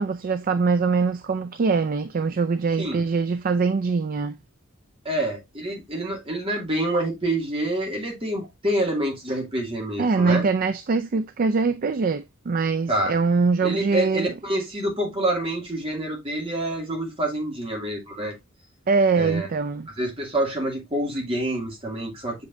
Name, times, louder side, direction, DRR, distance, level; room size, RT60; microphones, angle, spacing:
voice 1, 0.0-4.4 10.0-14.3 18.9-19.9, right 4 dB, 45° right, 0.4 m, -23 dB
voice 2, 5.0-10.4 12.9-13.1 13.6-18.4 19.2-19.5 20.0-22.4, right 1 dB, 30° right, 2.4 m, -27 dB
6.9 x 5.2 x 2.6 m
head